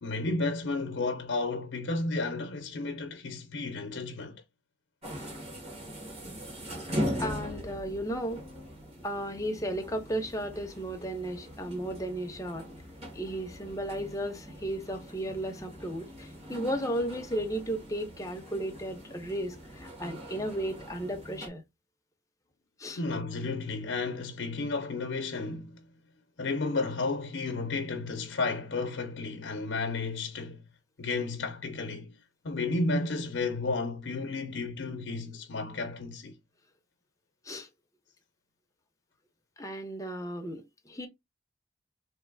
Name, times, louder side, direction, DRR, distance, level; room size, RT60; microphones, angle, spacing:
voice 1, 0.0-4.4 22.9-25.7 26.4-30.6 31.0-32.1 32.4-36.4, left 3 dB, 75° left, 0.6 m, -32 dB
sound 1, 5.0-21.5, equal, 35° right, 1.7 m, -40 dB
voice 2, 7.2-8.4 9.0-12.7 13.1-21.6 22.8-23.0 37.5-37.7 39.6-41.1, right 1 dB, 15° left, 0.7 m, -34 dB
3.1 x 3.0 x 3.8 m
head